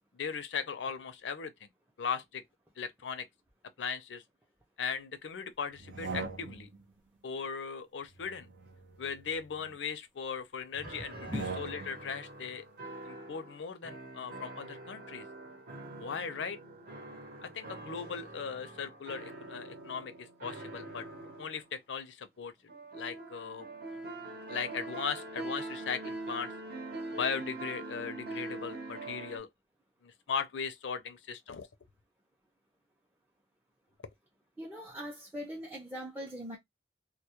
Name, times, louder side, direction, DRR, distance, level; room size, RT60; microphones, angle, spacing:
voice 1, 0.1-1.7 2.0-2.4 2.8-3.3 3.8-4.2 4.8-6.7 7.2-8.5 9.0-12.6 13.1-15.3 16.0-16.6 17.4-21.1 21.4-22.5 22.9-23.7 23.9-26.5 27.1-29.5 30.0-31.7, left 6 dB, 90° left, 0.5 m, -38 dB
sound 1, 5.8-6.8 8.1-9.8 11.1-12.1, right 4 dB, 85° right, 0.5 m, -42 dB
sound 2, 10.8-21.6 22.7-29.4, right 2 dB, 55° right, 0.8 m, -44 dB
voice 2, 34.6-36.6, equal, 10° right, 0.4 m, -40 dB
2.2 x 2.0 x 2.8 m
head